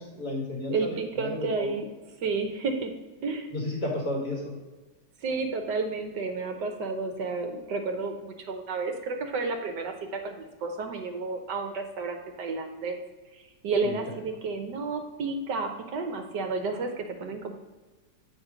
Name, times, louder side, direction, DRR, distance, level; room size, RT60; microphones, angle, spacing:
voice 1, 0.0-1.8 3.5-4.5 13.8-13.9, left 1 dB, 55° left, -4 dB, 2.6 m, -32 dB
voice 2, 0.7-1.8 2.2-2.9 3.2-3.5 5.2-13.0 13.3-17.5, right 4 dB, 70° right, 4 dB, 1.4 m, -31 dB
7.9 x 4.5 x 5.0 m, 1.3 s
omnidirectional pair, 2.0 m